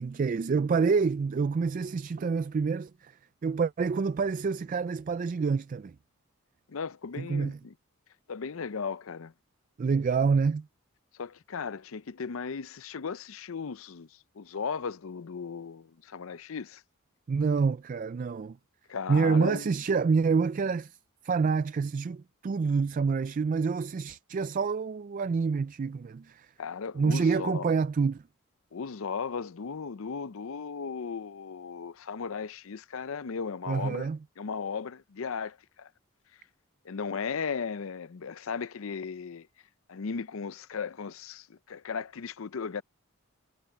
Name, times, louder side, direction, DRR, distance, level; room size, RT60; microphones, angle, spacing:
voice 1, 0.0-6.0 7.2-7.6 9.8-10.7 17.3-18.6 19.1-21.0 21.2-26.5 26.9-28.2 33.7-34.2, right 5 dB, 35° right, 0.3 m, -27 dB
voice 2, 6.7-7.7 8.3-9.3 11.2-14.1 14.4-16.8 18.9-19.7 26.6-27.7 28.7-34.1 34.4-35.9 36.8-39.5 39.9-42.8, left 5 dB, 65° left, 0.5 m, -36 dB
head